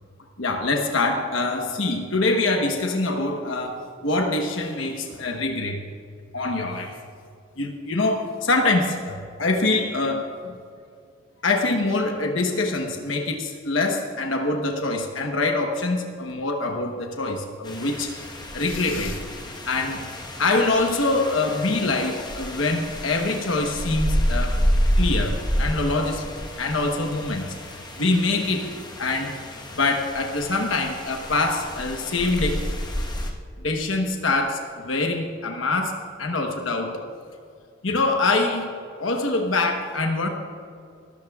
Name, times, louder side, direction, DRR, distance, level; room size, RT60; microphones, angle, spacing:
voice 1, 0.4-5.8 6.3-7.0 7.6-10.6 11.4-18.1 18.5-19.2 19.7-20.0 20.4-24.5 25.0-26.3 26.6-27.6 28.0-28.7 29.0-29.3 29.7-32.7 33.6-37.1 37.8-38.7 39.0-40.3, left 2 dB, 75° left, 3 dB, 1.1 m, -24 dB
sound 1, 17.6-33.3, equal, 20° left, 1.2 m, -29 dB
21.5 x 13.5 x 2.4 m, 2.3 s
head